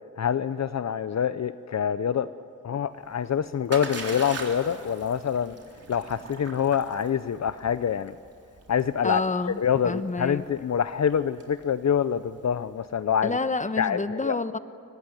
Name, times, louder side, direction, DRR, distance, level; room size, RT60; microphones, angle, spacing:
voice 1, 0.2-2.3 2.6-5.5 5.9-8.2 8.7-9.2 9.6-13.4 13.8-14.4, left 8 dB, 55° left, 13 dB, 0.7 m, -26 dB
Splash splatter, 3.0-12.9, right 3 dB, 45° right, 3.9 m, -41 dB
voice 2, 9.0-9.6 9.8-10.4 13.2-14.6, left 3 dB, 20° left, 12 dB, 1.1 m, -28 dB
23.5 x 19.5 x 9.9 m, 2.5 s
wide cardioid pair, 90°, 33 cm